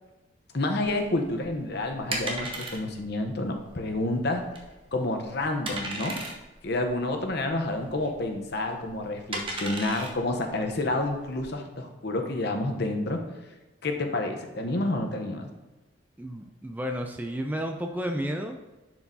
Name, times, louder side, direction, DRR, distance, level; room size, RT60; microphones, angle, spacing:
voice 1, 0.5-4.4 4.9-6.2 6.6-13.2 13.8-15.5, left 2 dB, 55° left, 4 dB, 0.8 m, -29 dB
sound 1, 0.8-11.5, right 2 dB, 25° right, 0.9 m, -37 dB
voice 2, 16.2-18.6, equal, 10° right, 4 dB, 0.3 m, -32 dB
10.5 x 4.6 x 2.7 m, 1.1 s
head